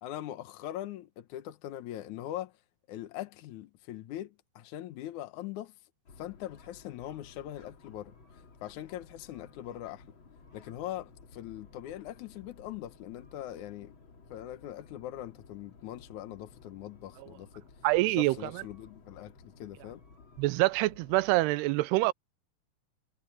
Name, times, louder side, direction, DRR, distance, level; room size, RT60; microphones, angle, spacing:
voice 1, 0.0-2.5 2.9-5.7 6.2-10.0 10.5-13.9 14.3-17.7 18.1-20.0, left 12 dB, 75° left, 1.8 m, -41 dB
sound 1, 6.0-21.5, left 4 dB, 35° left, 2.5 m, -56 dB
voice 2, 17.8-18.6 20.4-22.1, right 20 dB, 80° right, 2.6 m, -26 dB
omnidirectional pair, 4.9 m